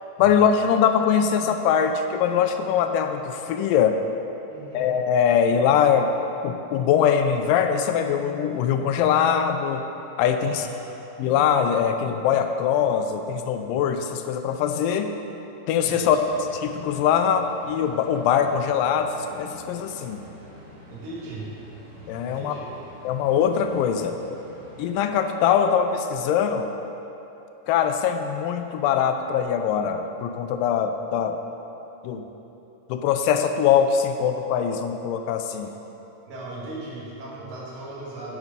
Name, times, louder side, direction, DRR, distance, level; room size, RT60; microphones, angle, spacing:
voice 1, 0.2-4.0 4.7-6.1 6.4-9.9 10.2-10.7 11.2-15.1 15.7-16.2 16.6-20.2 22.1-22.6 23.0-24.2 24.8-26.7 27.7-31.4 32.0-32.3 32.9-35.7, left 8 dB, 90° left, 7 dB, 2.2 m, -22 dB
voice 2, 4.5-5.0 10.4-10.7 15.8-16.2 20.9-21.5 22.2-22.6 35.5-35.6 36.3-38.4, right 2 dB, 80° right, -6 dB, 3.3 m, -37 dB
sound 1, 15.7-25.0, equal, 50° right, 1.8 m, -46 dB
9.8 x 6.0 x 5.2 m, 3.0 s
omnidirectional pair, 3.8 m